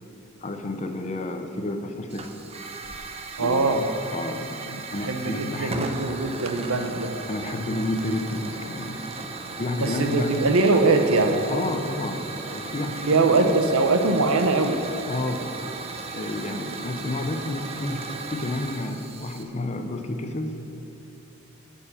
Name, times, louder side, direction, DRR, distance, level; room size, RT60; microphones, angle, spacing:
voice 1, 0.4-2.3 3.4-6.0 7.3-9.1 9.6-10.3 11.5-13.5 15.0-15.5 16.1-20.6, left 2 dB, 30° left, 6 dB, 0.6 m, -31 dB
Hiss / Fire, 2.1-19.4, right 3 dB, 30° right, 0.6 m, -36 dB
voice 2, 3.4-3.8 4.7-7.1 9.8-11.4 13.0-14.8, right 3 dB, 85° right, 6 dB, 0.8 m, -22 dB
10.5 x 5.4 x 7.1 m, 2.9 s
head